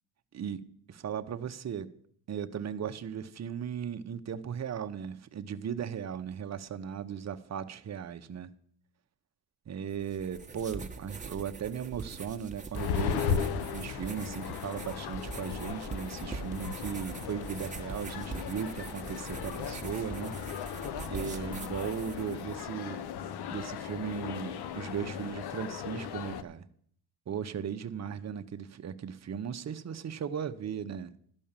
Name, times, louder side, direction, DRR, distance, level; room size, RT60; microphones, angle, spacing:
voice 1, 0.3-1.9 2.3-8.5 9.7-13.4 13.7-20.4 21.1-23.0 23.5-26.7 27.3-31.1, right 8 dB, 45° right, 0.9 m, -37 dB
sound 1, 9.9-22.6, right 4 dB, 20° right, 1.2 m, -43 dB
sound 2, 12.7-26.4, left 7 dB, 80° left, 0.9 m, -36 dB
12.5 x 5.4 x 8.9 m
cardioid pair, 100°, 38 cm